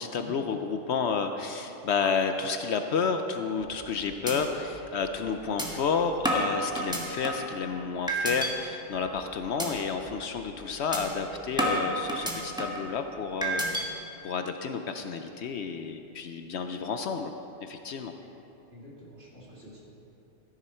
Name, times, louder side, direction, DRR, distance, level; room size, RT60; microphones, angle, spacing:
voice 1, 0.0-13.9 14.2-17.3 17.6-18.1, left 5 dB, 65° left, 6 dB, 0.8 m, -31 dB
sound 1, 3.6-3.9 4.3-4.4 4.8-4.9 5.6-5.7 6.2-7.5 8.1-8.5 8.9-9.2 9.6-9.7 10.1-10.3 10.9-11.0 11.6-12.8 13.4-13.8, right 1 dB, 5° right, 1.2 m, -29 dB
voice 2, 18.7-19.8, left 1 dB, 50° right, -6 dB, 2.9 m, -48 dB
14.0 x 10.5 x 4.4 m, 3.0 s
omnidirectional pair, 1.3 m